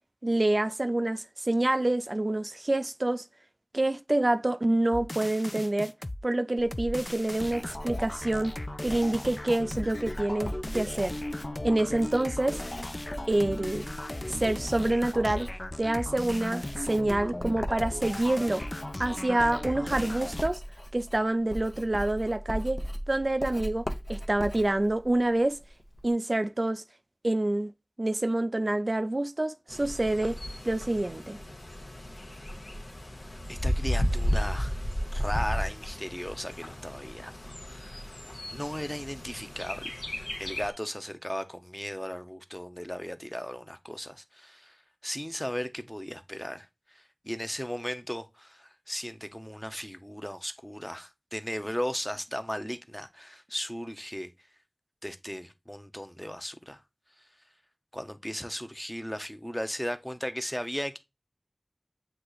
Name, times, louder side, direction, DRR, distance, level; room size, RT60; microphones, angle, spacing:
voice 1, 0.2-3.2 3.7-5.9 6.2-8.5 8.8-11.1 11.6-12.6 13.3-13.9 14.3-15.5 15.8-18.6 19.0-20.6 20.9-22.8 23.1-25.6 26.0-26.8 27.2-27.7 28.0-30.4 30.6-31.4, right 1 dB, 60° right, 0.4 m, -27 dB
sound 1, 4.9-6.2 6.7-20.5, left 1 dB, 45° left, 0.3 m, -37 dB
Writing, 6.6-26.1, equal, 60° left, 0.7 m, -40 dB
Bird, 29.7-40.7, equal, 85° left, 0.9 m, -33 dB
voice 2, 33.5-34.7 35.1-38.1 38.5-40.0 40.4-44.8 45.0-54.3 55.0-56.8 57.9-61.0, equal, 10° left, 0.6 m, -36 dB
7.7 x 2.9 x 2.3 m
wide cardioid pair, 45°, 0 cm